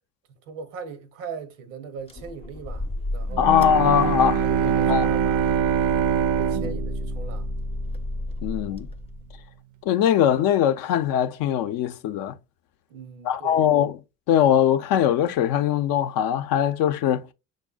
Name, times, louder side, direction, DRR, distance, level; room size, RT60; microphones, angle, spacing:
voice 1, 0.3-3.7 4.4-5.6 6.1-7.5 12.9-13.7, right 5 dB, 85° right, 0.8 m, -39 dB
sound 1, 2.1-9.5, left 1 dB, 15° left, 0.6 m, -31 dB
Bowed string instrument, 3.3-8.1, right 9 dB, 60° right, 0.5 m, -24 dB
voice 2, 3.4-4.4 4.9-5.1 8.4-8.9 9.9-12.4 13.2-14.0 14.3-17.3, left 10 dB, 65° left, 0.6 m, -21 dB
6.2 x 2.1 x 2.2 m
supercardioid pair, 70°, 37 cm